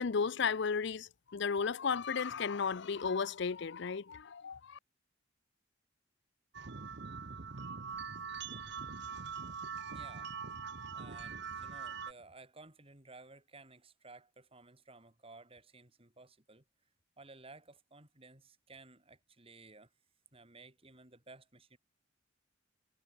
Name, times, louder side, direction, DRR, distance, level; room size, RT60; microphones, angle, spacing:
voice 1, 0.0-4.8, left 5 dB, 60° left, 0.6 m, -34 dB
sound 1, 6.5-12.1, right 5 dB, 60° right, 1.0 m, -43 dB
voice 2, 9.9-10.3 10.9-16.6 17.2-19.9 20.3-21.8, right 3 dB, 30° right, 4.2 m, -56 dB
head